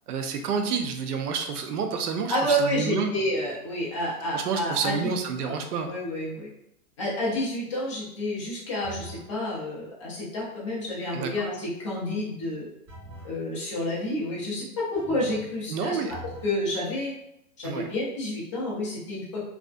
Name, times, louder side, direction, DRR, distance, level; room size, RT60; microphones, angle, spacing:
voice 1, 0.1-3.1 4.3-5.9 11.1-11.5 15.7-16.1 17.6-17.9, right 5 dB, 85° right, 5 dB, 0.6 m, -29 dB
voice 2, 2.3-5.1 5.4-5.5 5.8-6.5 7.0-12.7 13.2-16.0 16.4-17.1 17.6-19.4, left 1 dB, 25° left, -6 dB, 0.4 m, -29 dB
sound 1, 8.8-9.3 12.9-13.4 14.9-15.6 16.1-16.6, equal, 25° right, 1.2 m, -43 dB
2.4 x 2.1 x 2.4 m, 0.78 s
hypercardioid pair, 155°, 45 cm